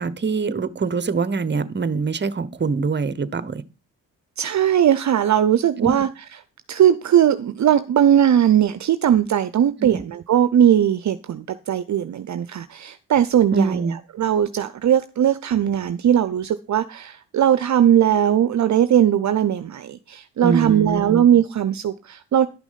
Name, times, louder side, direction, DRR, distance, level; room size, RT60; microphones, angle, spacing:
voice 1, 0.0-3.6 5.8-5.9 9.8-10.0 13.5-14.0 20.4-21.2, right 4 dB, 30° right, 1.1 m, -24 dB
voice 2, 4.4-6.1 6.7-22.5, right 10 dB, 50° right, 0.7 m, -19 dB
11.5 x 6.0 x 5.7 m
supercardioid pair, 55°, 36 cm